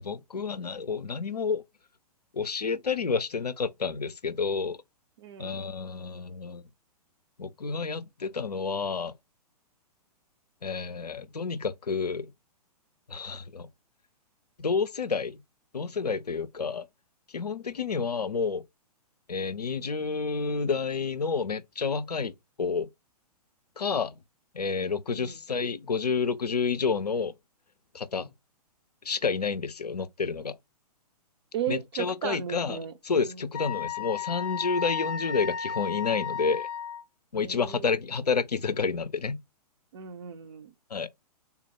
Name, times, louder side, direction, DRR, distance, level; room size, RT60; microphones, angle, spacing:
voice 1, 0.0-1.6 2.3-4.8 5.4-6.6 7.4-9.1 10.6-12.3 13.1-13.7 14.6-15.4 15.7-16.8 17.3-18.6 19.3-22.3 22.6-22.9 23.8-24.2 24.5-27.3 27.9-28.3 29.0-30.6 31.7-32.8 33.0-36.7 37.3-39.4 40.9-41.1, left 5 dB, 80° left, 0.5 m, -29 dB
voice 2, 5.2-5.7 25.1-25.4 31.5-32.9 33.3-33.4 37.3-37.9 39.9-40.7, right 9 dB, 45° right, 0.6 m, -36 dB
Wind instrument woodwind instrument, 33.5-37.0, left 7 dB, 35° left, 0.6 m, -33 dB
3.6 x 2.0 x 4.4 m
figure-of-eight pair, 115°, 20 cm